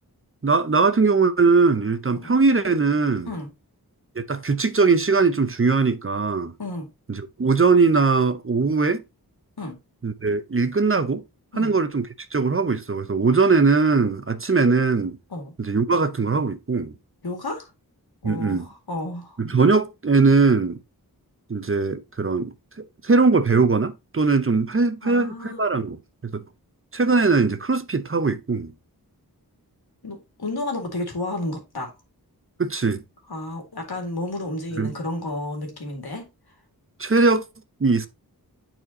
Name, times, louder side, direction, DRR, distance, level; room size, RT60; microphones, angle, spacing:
voice 1, 0.4-3.3 4.2-6.5 7.1-9.0 10.0-11.2 11.6-15.2 15.6-16.9 18.2-18.7 19.4-20.8 21.5-26.0 26.2-26.4 26.9-28.7 32.6-33.0 34.8-34.9 37.0-37.4 37.8-38.1, right 4 dB, 35° right, 0.7 m, -20 dB
voice 2, 17.2-17.7 18.2-19.4 25.0-25.6 30.0-31.9 33.3-36.3, left 2 dB, 80° left, 2.1 m, -31 dB
9.4 x 4.3 x 2.8 m
wide cardioid pair, 70°, 37 cm